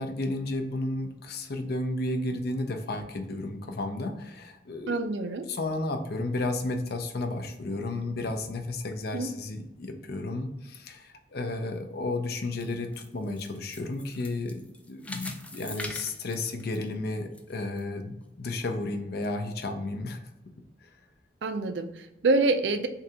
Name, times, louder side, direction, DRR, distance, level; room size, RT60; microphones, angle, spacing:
voice 1, 0.0-5.0 5.5-20.2 20.8-20.9, left 2 dB, 60° left, 6 dB, 0.6 m, -33 dB
voice 2, 4.9-5.4 9.1-9.3 21.4-22.9, right 3 dB, 85° right, 7 dB, 0.5 m, -26 dB
sound 1, 12.4-17.4 17.8-17.9 18.5-18.6, left 2 dB, 10° left, 0.4 m, -42 dB
3.7 x 2.8 x 3.4 m, 0.95 s
head